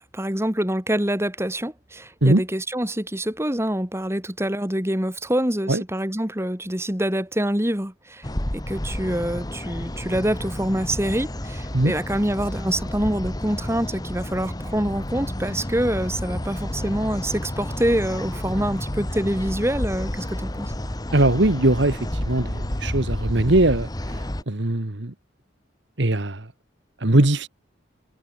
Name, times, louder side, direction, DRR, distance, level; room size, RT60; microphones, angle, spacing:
voice 1, 0.0-8.3 8.5-20.7, right 1 dB, 15° right, 3.2 m, -26 dB
sound 1, 8.2-24.4, left 1 dB, 20° left, 1.6 m, -30 dB
voice 2, 21.1-23.9 24.5-25.1 26.0-26.5 27.0-27.5, right 1 dB, 70° right, 1.7 m, -20 dB
head